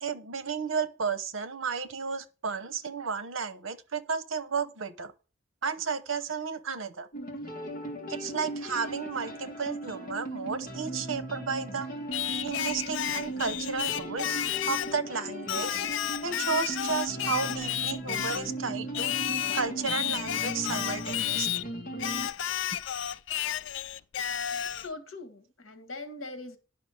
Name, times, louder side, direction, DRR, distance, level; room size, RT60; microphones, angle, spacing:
voice 1, 0.0-5.1 5.6-7.1 8.1-11.9 12.4-14.4 14.7-15.8 16.2-19.2 19.5-21.5, right 5 dB, 75° right, 0.8 m, -33 dB
sound 1, 7.1-22.3, right 1 dB, 45° left, 1.9 m, -38 dB
Singing, 12.1-15.0 15.5-18.5 18.9-21.7 22.0-24.9, left 11 dB, 65° left, 0.4 m, -32 dB
voice 2, 24.8-26.6, left 2 dB, 80° left, 1.5 m, -41 dB
10.0 x 5.7 x 6.3 m
head